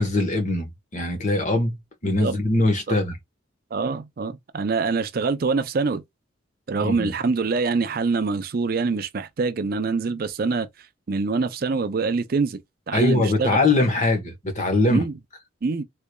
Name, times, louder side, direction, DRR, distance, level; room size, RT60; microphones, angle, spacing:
voice 1, 0.0-3.2 6.8-7.1 12.9-15.0, left 2 dB, 35° left, 1.1 m, -22 dB
voice 2, 3.7-6.0 6.7-10.7 11.1-12.6 12.9-13.6 14.9-15.1 15.6-15.8, right 4 dB, 45° right, 0.4 m, -24 dB
3.7 x 3.2 x 2.2 m
head